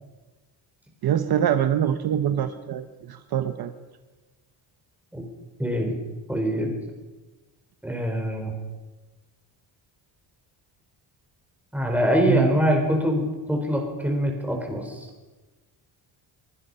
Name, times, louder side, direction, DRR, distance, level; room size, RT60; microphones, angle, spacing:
voice 1, 1.0-3.7 12.2-12.5, right 9 dB, 55° right, 8 dB, 1.2 m, -24 dB
voice 2, 5.6-6.0 6.3-6.7 7.8-8.5 11.7-15.1, equal, 5° right, 1 dB, 4.6 m, -24 dB
24.0 x 23.5 x 5.6 m, 1.2 s
cardioid pair, 180°, 44 cm